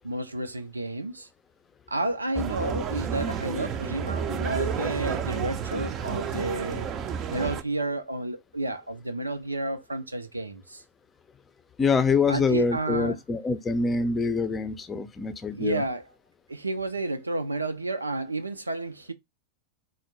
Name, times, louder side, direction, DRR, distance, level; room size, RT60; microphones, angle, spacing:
voice 1, 0.0-1.3 1.9-6.9 7.3-10.8 12.3-13.2 15.5-16.1 16.5-19.1, right 2 dB, 80° right, 0.5 m, -31 dB
sound 1, 2.3-7.6, right 7 dB, 30° right, 0.6 m, -31 dB
voice 2, 11.8-15.8, left 4 dB, 20° left, 0.6 m, -25 dB
4.3 x 2.0 x 4.5 m
figure-of-eight pair, 90°, 0 cm